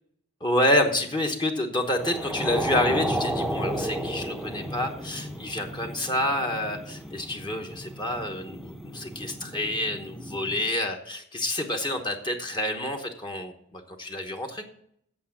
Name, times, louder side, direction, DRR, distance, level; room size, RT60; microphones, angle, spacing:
voice 1, 0.4-14.7, left 1 dB, 20° left, 3 dB, 1.0 m, -28 dB
sound 1, 1.9-10.6, right 1 dB, ahead, 0.7 m, -33 dB
8.5 x 7.4 x 7.2 m, 0.68 s
head